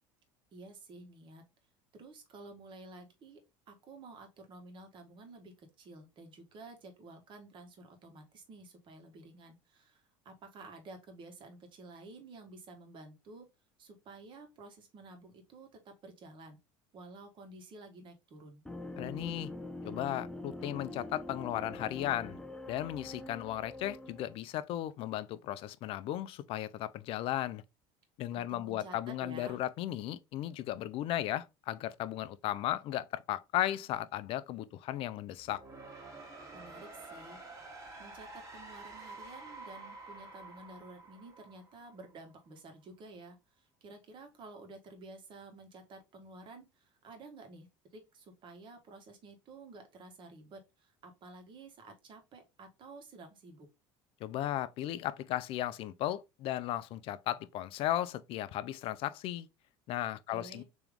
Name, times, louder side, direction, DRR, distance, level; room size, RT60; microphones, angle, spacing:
voice 1, 0.5-1.4 1.9-3.4 3.7-13.5 13.8-16.6 16.9-18.6 28.3-29.6 36.5-37.4 38.0-53.7 60.3-60.6, right 2 dB, 45° right, 1.4 m, -52 dB
sound 1, 18.7-24.4, left 2 dB, 5° left, 0.5 m, -44 dB
voice 2, 19.0-19.5 19.8-22.4 22.7-27.6 28.2-35.6 54.2-59.5 59.9-60.6, left 13 dB, 55° left, 0.4 m, -35 dB
sound 2, 35.3-42.3, right 2 dB, 30° right, 1.5 m, -49 dB
3.4 x 3.0 x 3.5 m
supercardioid pair, 85°, 11 cm